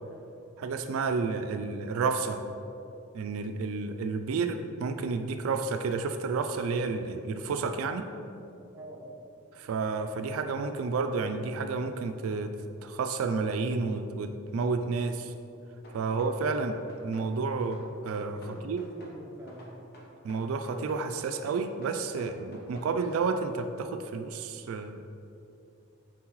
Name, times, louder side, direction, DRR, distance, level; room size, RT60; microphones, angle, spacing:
voice 1, 0.6-2.4 3.1-8.1 9.5-12.5 12.8-15.3 15.9-18.4 18.6-18.8 20.2-25.0, right 4 dB, 70° right, 8 dB, 0.3 m, -31 dB
voice 2, 8.7-9.2 18.3-19.8, right 1 dB, 10° right, -4 dB, 0.9 m, -47 dB
sound 1, 15.8-17.3 17.6-19.2 19.5-21.1 21.4-22.9, left 1 dB, 50° left, 1.0 m, -50 dB
7.3 x 4.7 x 3.1 m, 2.7 s
head